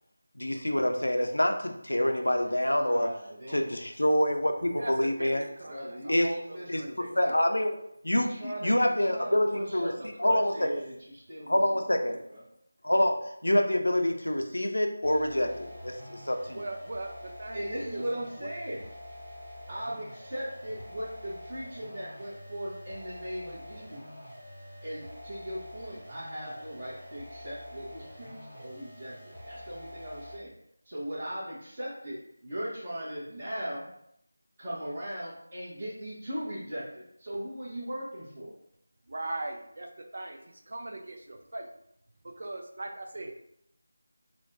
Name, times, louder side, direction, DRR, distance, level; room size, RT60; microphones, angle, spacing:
voice 1, 0.4-3.1 3.5-5.5 6.1-6.3 6.7-6.8 7.2-7.7 8.0-9.9 10.2-10.7 11.5-12.2 12.8-13.2 13.4-16.6, left 1 dB, 85° left, 4 dB, 0.6 m, -26 dB
voice 2, 2.6-3.7 5.6-7.3 8.2-12.4 17.5-18.8 19.7-24.0 24.8-29.1 29.4-30.5 30.8-33.8 34.6-38.5, equal, 30° right, -12 dB, 1.2 m, -38 dB
voice 3, 4.8-5.7 6.0-7.4 9.7-10.7 16.5-18.0 39.1-41.7 42.2-43.3, right 2 dB, 55° right, 3 dB, 0.6 m, -40 dB
sound 1, 15.0-30.5, equal, 5° right, 1.1 m, -46 dB
4.2 x 2.3 x 2.7 m, 0.74 s
figure-of-eight pair, 165°, 0 cm